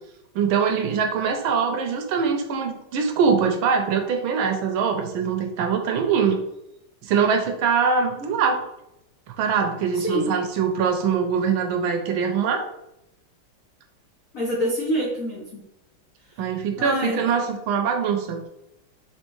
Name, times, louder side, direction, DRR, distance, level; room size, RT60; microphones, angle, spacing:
voice 1, 0.3-6.4 7.0-8.6 9.4-12.6 16.4-18.5, right 6 dB, 75° right, 4 dB, 1.3 m, -23 dB
voice 2, 9.9-10.3 14.3-15.6 16.3-16.4 16.8-17.3, equal, 85° left, -3 dB, 0.7 m, -26 dB
4.4 x 3.1 x 2.9 m, 0.83 s
omnidirectional pair, 2.4 m